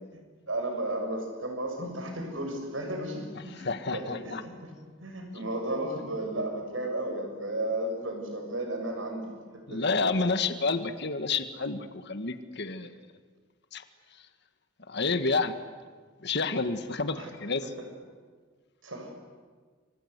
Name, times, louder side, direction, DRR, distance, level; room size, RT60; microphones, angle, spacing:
voice 1, 0.5-4.7 5.0-9.9 17.1-17.3 18.8-19.1, right 1 dB, 80° right, 3 dB, 7.0 m, -34 dB
voice 2, 3.6-4.4 9.7-12.9 13.7-13.8 14.9-15.6 16.2-17.7, left 3 dB, 60° left, 9 dB, 1.6 m, -29 dB
29.5 x 24.5 x 8.2 m, 1.5 s
head